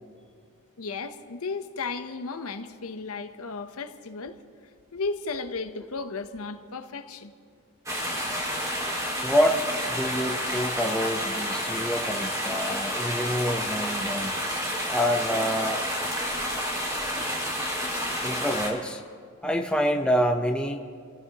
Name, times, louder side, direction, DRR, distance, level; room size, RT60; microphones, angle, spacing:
voice 1, 0.8-4.4 4.9-7.3, left 4 dB, 75° left, 0.8 m, -34 dB
sound 1, 7.9-18.7, equal, 15° right, 2.1 m, -30 dB
voice 2, 9.2-14.3 14.9-15.8 18.2-19.0 19.4-20.8, equal, 5° left, 0.8 m, -27 dB
29.0 x 16.0 x 2.9 m
head